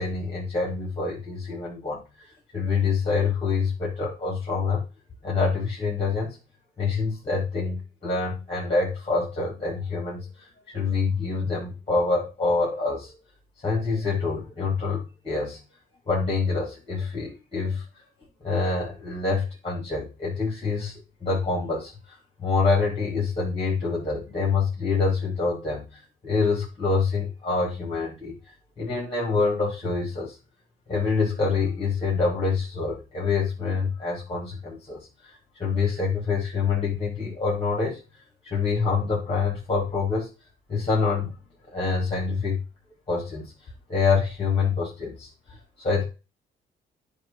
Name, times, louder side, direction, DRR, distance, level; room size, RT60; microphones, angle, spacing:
voice 1, 0.0-4.8 5.2-6.4 6.8-13.2 13.6-15.6 16.1-17.8 18.4-28.3 28.8-30.4 30.9-40.3 40.7-41.4 41.7-42.6 43.1-46.0, left 4 dB, 25° left, -4 dB, 3.6 m, -26 dB
9.4 x 3.4 x 5.8 m, 0.30 s
cardioid pair, 90°, 20 cm